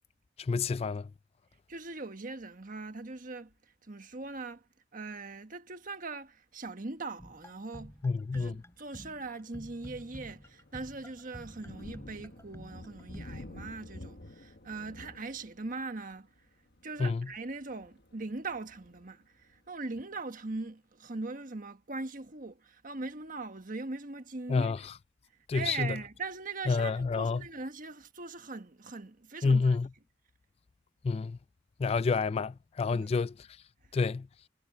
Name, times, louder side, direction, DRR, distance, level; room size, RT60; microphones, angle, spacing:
voice 1, 0.5-1.1 8.0-8.5 17.0-17.2 24.5-24.8 25.5-25.9 26.7-27.4 29.4-29.9 31.0-31.4 31.8-33.3 33.9-34.3, left 4 dB, 35° left, 0.3 m, -28 dB
voice 2, 1.7-4.7 4.9-8.0 8.3-16.3 16.8-24.7 25.5-29.8 32.9-33.1 33.9-34.1, right 3 dB, 45° right, 1.4 m, -41 dB
sound 1, 7.2-13.3, equal, 15° left, 7.7 m, -50 dB
Thunder, 7.8-8.1 8.7-8.8 9.3-19.8, left 1 dB, 60° left, 1.4 m, -51 dB
head